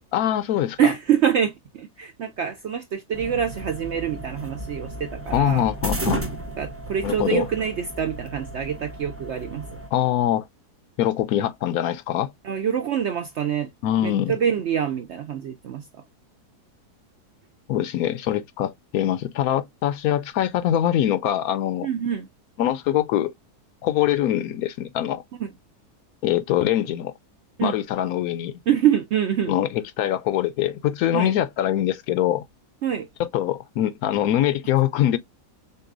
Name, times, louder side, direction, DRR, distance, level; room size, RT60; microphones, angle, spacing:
voice 1, 0.1-0.9 5.3-6.2 7.0-7.4 9.9-10.5 11.0-12.3 13.8-14.4 17.7-21.9 22.6-23.3 23.8-25.2 26.2-27.1 27.6-28.5 29.5-32.4 33.2-35.2, left 12 dB, 70° left, 1.0 m, -23 dB
voice 2, 0.8-5.7 6.6-9.7 12.4-13.7 14.0-16.0 21.8-22.3 25.4-25.5 27.6-27.8 28.7-29.5 31.1-31.3 32.8-33.1, right 9 dB, 70° right, 0.6 m, -25 dB
sound 1, 3.1-9.9, right 1 dB, 15° right, 0.4 m, -34 dB
6.6 x 2.2 x 2.5 m
omnidirectional pair, 1.7 m